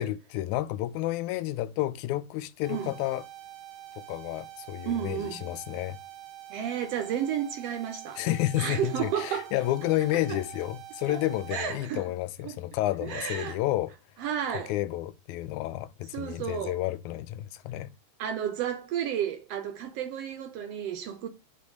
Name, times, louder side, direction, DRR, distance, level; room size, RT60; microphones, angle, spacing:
voice 1, 0.0-3.2 4.0-6.0 8.2-14.0 14.7-17.9, left 15 dB, 85° left, 2.0 m, -30 dB
sound 1, 2.6-11.6, right 12 dB, 90° right, 1.3 m, -46 dB
voice 2, 4.9-5.4 6.5-8.2 8.6-9.5 10.3-10.4 11.1-11.2 11.5-12.1 12.4-12.6 13.0-13.6 14.2-14.7 16.1-16.8 18.2-21.3, right 9 dB, 70° right, 1.6 m, -32 dB
5.3 x 4.4 x 5.2 m
omnidirectional pair, 3.4 m